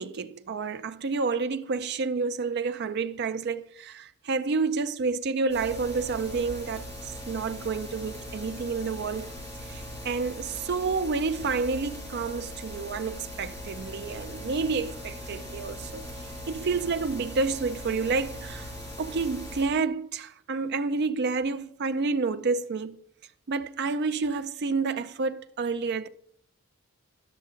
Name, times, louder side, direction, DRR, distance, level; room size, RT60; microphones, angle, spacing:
voice 1, 0.0-9.3 9.6-16.0 16.5-18.7 19.0-23.0 23.5-26.1, right 4 dB, 50° right, 0.4 m, -29 dB
sound 1, 5.5-19.6, equal, 10° left, 4.5 m, -40 dB
11.5 x 6.4 x 3.8 m
head